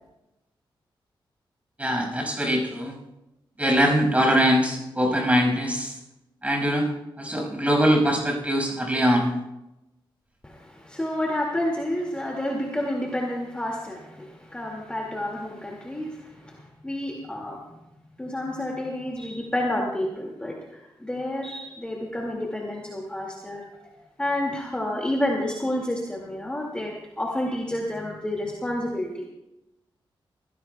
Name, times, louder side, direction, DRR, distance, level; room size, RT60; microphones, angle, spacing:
voice 1, 1.8-3.0 3.6-6.0 6.4-6.9 7.2-9.3, equal, 15° right, 0 dB, 6.1 m, -22 dB
voice 2, 10.4-17.6 18.2-23.8 24.2-29.3, left 1 dB, 10° left, -2 dB, 2.3 m, -30 dB
25.0 x 16.5 x 2.3 m, 0.94 s
wide cardioid pair, 110°, 9 cm